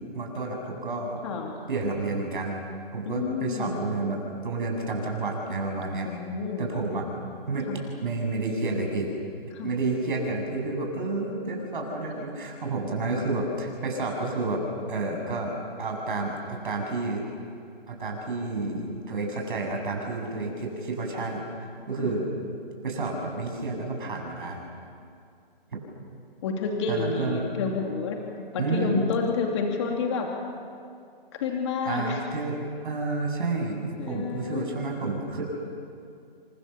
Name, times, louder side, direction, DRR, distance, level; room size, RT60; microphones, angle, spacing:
voice 1, 0.1-1.2 1.7-2.6 2.9-4.2 4.4-6.1 6.6-7.0 7.5-7.7 8.0-9.1 9.6-14.6 14.9-15.5 15.8-17.2 17.9-21.4 21.9-22.2 22.8-24.6 26.9-27.4 28.6-29.0 31.8-32.5 32.8-35.4, right 3 dB, 55° right, 1 dB, 7.7 m, -30 dB
voice 2, 1.2-1.6 3.0-3.9 6.0-6.8 7.7-7.8 9.5-9.7 22.0-22.1 25.8-25.9 26.4-28.2 28.5-30.3 31.3-32.2 34.0-34.7, left 5 dB, 30° left, 1 dB, 2.8 m, -29 dB
29.0 x 25.0 x 7.1 m, 2.4 s
hypercardioid pair, 160°, 30 cm